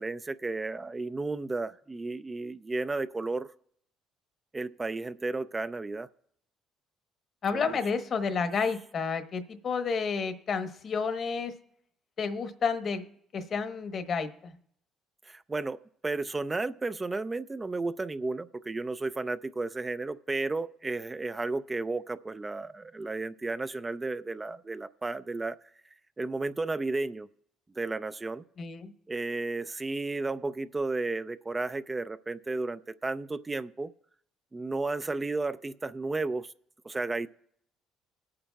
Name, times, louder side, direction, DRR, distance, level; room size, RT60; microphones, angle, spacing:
voice 1, 0.0-3.5 4.5-6.1 7.5-7.8 15.2-25.6 26.2-27.3 27.8-28.4 29.1-33.9 34.5-36.5 36.8-37.3, right 3 dB, 20° right, 12 dB, 0.4 m, -33 dB
voice 2, 7.4-11.5 12.2-13.0 13.3-14.5 28.6-28.9, left 5 dB, 50° left, 8 dB, 1.1 m, -30 dB
21.5 x 8.6 x 2.3 m, 0.69 s
supercardioid pair, 75°, 0 cm